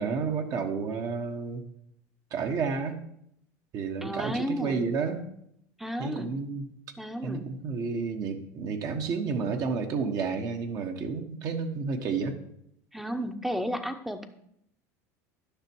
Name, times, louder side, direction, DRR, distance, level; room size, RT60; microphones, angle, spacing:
voice 1, 0.0-1.6 2.3-3.0 3.7-5.2 6.0-6.7 7.2-12.4, right 5 dB, 50° right, 5 dB, 1.3 m, -31 dB
voice 2, 4.0-4.8 5.8-6.3 7.0-7.5 12.9-14.3, equal, 5° right, 9 dB, 0.8 m, -33 dB
10.5 x 6.0 x 4.6 m, 0.74 s
supercardioid pair, 110°, 8 cm